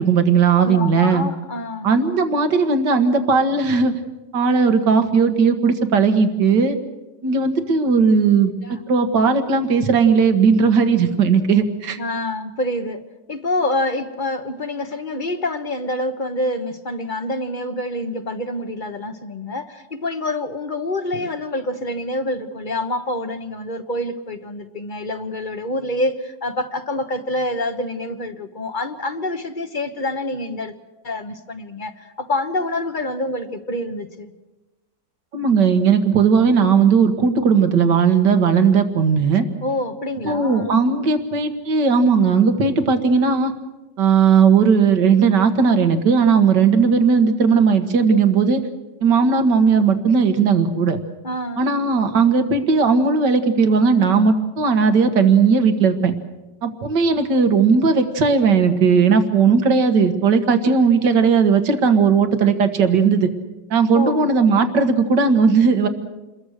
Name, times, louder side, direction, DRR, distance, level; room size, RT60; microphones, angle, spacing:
voice 1, 0.0-1.2 1.8-4.0 4.3-6.8 7.2-8.5 8.9-12.0 35.3-39.5 40.2-43.5 44.0-48.6 49.0-51.0 51.6-56.2 56.6-63.3 63.7-65.9, right 5 dB, 75° right, 8 dB, 2.2 m, -17 dB
voice 2, 0.6-1.9 8.6-8.8 12.0-13.0 13.3-30.7 31.0-34.3 39.6-40.8 51.2-51.7 63.9-64.3, left 1 dB, 30° left, 9 dB, 1.2 m, -26 dB
28.0 x 22.0 x 6.6 m, 1.1 s
omnidirectional pair, 1.9 m